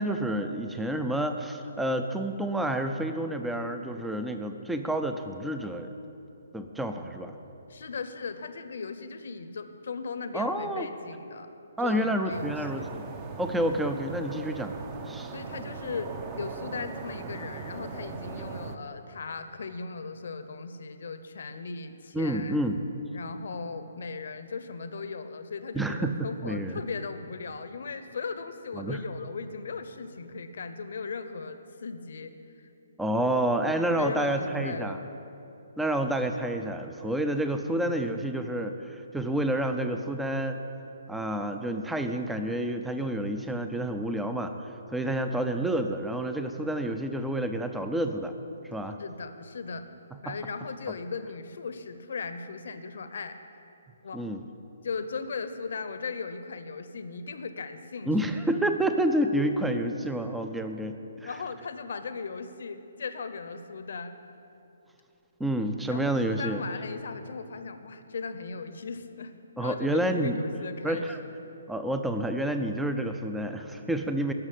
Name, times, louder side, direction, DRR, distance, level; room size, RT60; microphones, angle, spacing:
voice 1, 0.0-5.9 6.5-7.4 10.3-10.9 11.8-13.0 13.4-14.7 15.1-15.3 22.1-22.8 25.7-26.8 28.8-29.0 33.0-35.0 35.8-40.6 41.1-44.5 44.9-48.3 48.7-49.0 50.3-50.4 54.1-54.4 58.1-61.3 65.4-66.6 69.6-70.4 70.8-71.2 71.7-74.3, right 1 dB, 5° right, 6 dB, 0.5 m, -29 dB
voice 2, 7.7-11.5 11.8-12.9 15.3-22.6 23.1-32.3 34.0-35.0 49.0-49.9 50.2-53.4 54.0-54.3 54.8-58.1 61.2-64.1 65.9-69.3 69.6-71.1, left 4 dB, 70° left, 10 dB, 0.9 m, -37 dB
sound 1, 12.3-18.8, right 5 dB, 30° right, 0.9 m, -39 dB
13.0 x 6.4 x 9.2 m, 2.9 s
hypercardioid pair, 150°, 0 cm